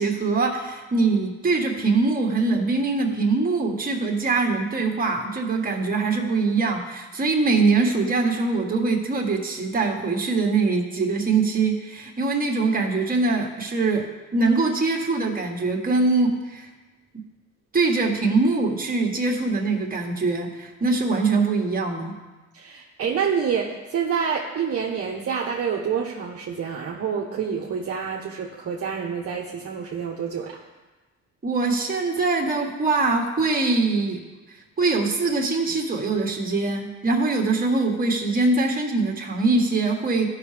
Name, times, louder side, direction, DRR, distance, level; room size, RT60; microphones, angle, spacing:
voice 1, 0.0-14.1 14.3-16.7 17.7-22.2 31.4-34.2 34.8-40.3, right 3 dB, 30° right, 1 dB, 1.6 m, -23 dB
voice 2, 22.5-30.6, right 7 dB, 50° right, -1 dB, 0.9 m, -27 dB
14.5 x 5.8 x 3.4 m, 1.2 s
cardioid pair, 90°, 30 cm